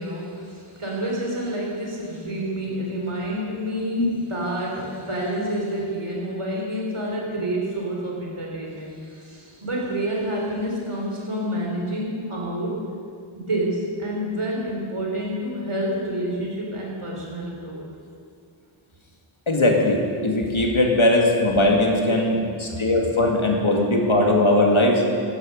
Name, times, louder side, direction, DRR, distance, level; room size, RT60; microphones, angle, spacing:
voice 1, 0.0-12.8 13.3-17.9 22.7-23.3, right 1 dB, 85° right, -2 dB, 3.4 m, -28 dB
voice 2, 19.5-25.0, left 1 dB, 70° left, 0 dB, 2.1 m, -19 dB
14.5 x 11.0 x 5.3 m, 2.3 s
wide cardioid pair, 45°, 49 cm